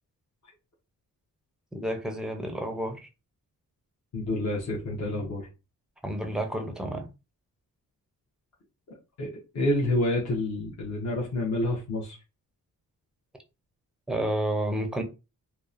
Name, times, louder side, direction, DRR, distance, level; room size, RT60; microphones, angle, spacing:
voice 1, 1.7-3.0 6.0-7.1 14.1-15.0, right 1 dB, ahead, 0.4 m, -30 dB
voice 2, 4.1-5.5 9.2-12.2, left 1 dB, 50° left, 0.7 m, -28 dB
2.8 x 2.0 x 2.4 m
wide cardioid pair, 110°, 36 cm